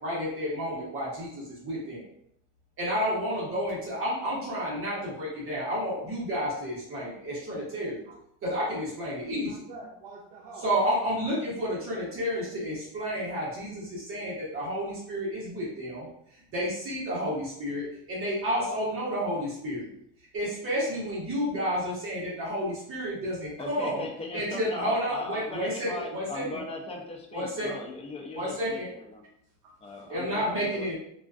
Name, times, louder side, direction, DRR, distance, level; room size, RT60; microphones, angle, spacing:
voice 1, 0.0-2.0 2.8-8.0 8.4-9.5 10.6-16.1 16.5-19.9 20.3-24.0 24.3-26.6 27.3-27.7 28.3-28.9 30.1-31.0, equal, 40° right, -6 dB, 0.9 m, -31 dB
voice 2, 4.7-5.0 8.1-8.2 9.3-10.7 29.6-30.1, right 3 dB, 80° right, -3 dB, 0.6 m, -47 dB
voice 3, 23.6-29.3 29.8-31.0, left 2 dB, 20° left, 1 dB, 0.4 m, -38 dB
2.3 x 2.3 x 2.3 m, 0.73 s
cardioid pair, 145°, 33 cm